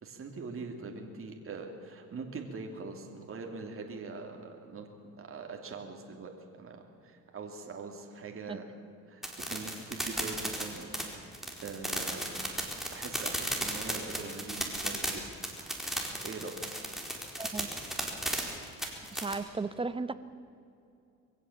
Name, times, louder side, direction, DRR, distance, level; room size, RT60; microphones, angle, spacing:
voice 1, 0.0-4.9 5.2-6.3 6.6-8.6 9.1-10.9 11.6-12.2 12.7-15.3 16.2-16.6, right 4 dB, 40° right, 2 dB, 2.8 m, -42 dB
sound 1, 9.2-19.3, right 1 dB, ahead, 4.3 m, -35 dB
voice 2, 17.4-17.7 19.1-20.1, right 3 dB, 15° right, 13 dB, 1.0 m, -35 dB
23.0 x 15.5 x 8.6 m, 2.6 s
cardioid pair, 95°, 32 cm